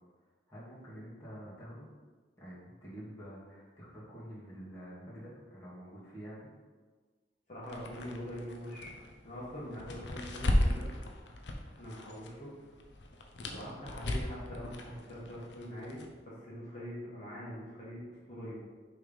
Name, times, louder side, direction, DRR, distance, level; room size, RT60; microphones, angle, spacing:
voice 1, 0.5-1.9 2.4-6.5 13.5-13.7, equal, 15° left, -9 dB, 2.0 m, -48 dB
voice 2, 7.5-8.9 9.2-10.9 11.8-12.5 13.5-16.0 16.2-18.6, equal, 40° left, -8 dB, 1.5 m, -43 dB
sound 1, 7.6-12.3 12.6-16.1, left 1 dB, 70° left, 0.7 m, -35 dB
6.3 x 3.4 x 5.2 m, 1.4 s
head